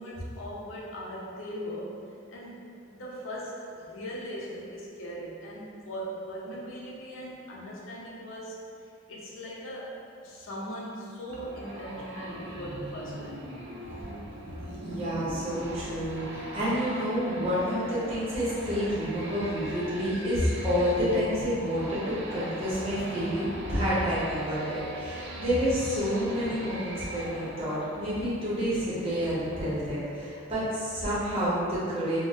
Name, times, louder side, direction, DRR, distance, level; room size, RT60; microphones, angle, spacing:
voice 1, 0.0-2.0 2.3-2.6 2.9-8.6 9.1-13.4, equal, 75° left, -4 dB, 0.6 m, -39 dB
sound 1, 11.3-29.7, right 1 dB, 55° right, 0.4 m, -41 dB
voice 2, 14.7-32.2, equal, 30° right, -10 dB, 0.7 m, -29 dB
3.8 x 2.1 x 2.3 m, 2.5 s
head